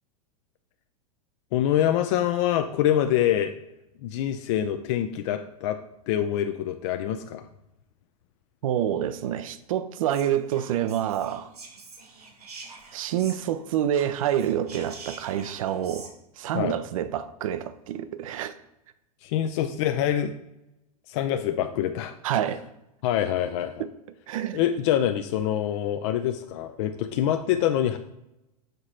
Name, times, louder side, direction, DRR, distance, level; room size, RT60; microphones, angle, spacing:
voice 1, 1.5-3.5 4.0-5.8 6.1-7.5 16.5-16.8 19.2-20.3 21.1-22.1 23.0-23.8 24.5-28.0, left 11 dB, 50° left, 0.5 m, -25 dB
voice 2, 8.6-11.5 12.9-16.1 16.4-18.5 22.2-22.6 23.8-23.9 24.3-24.6, right 10 dB, 60° right, 0.6 m, -27 dB
Whispering, 10.1-13.6 13.9-16.1, right 4 dB, 80° right, 1.3 m, -46 dB
6.7 x 4.9 x 4.2 m
figure-of-eight pair, 95°, 19 cm